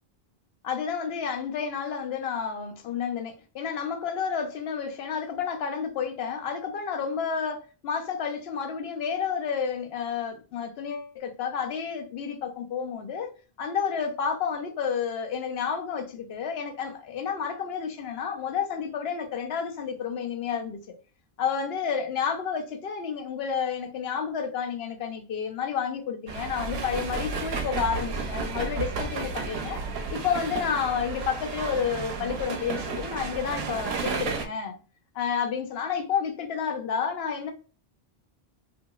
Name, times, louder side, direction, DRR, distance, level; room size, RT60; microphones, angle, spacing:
voice 1, 0.6-13.3 13.6-20.8 21.4-29.8 30.1-34.7 35.1-37.5, left 7 dB, 75° left, 0.9 m, -30 dB
sound 1, 26.3-34.5, right 4 dB, 75° right, 0.8 m, -32 dB
2.8 x 2.7 x 2.3 m
omnidirectional pair, 1.0 m